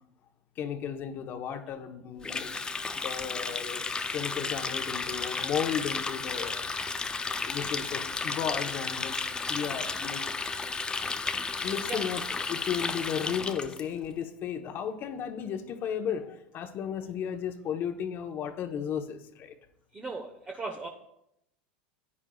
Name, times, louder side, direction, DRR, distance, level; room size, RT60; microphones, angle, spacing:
voice 1, 0.6-2.5 2.9-6.6 7.4-9.2 9.5-10.2 11.6-12.2 12.5-19.5, left 8 dB, 40° left, 6 dB, 1.0 m, -34 dB
Water tap faucet, 2.2-13.8, left 4 dB, 15° left, 0.6 m, -33 dB
voice 2, 19.9-20.9, right 3 dB, 20° right, 1 dB, 1.1 m, -37 dB
13.5 x 9.7 x 2.4 m, 0.80 s
supercardioid pair, 110°, 5 cm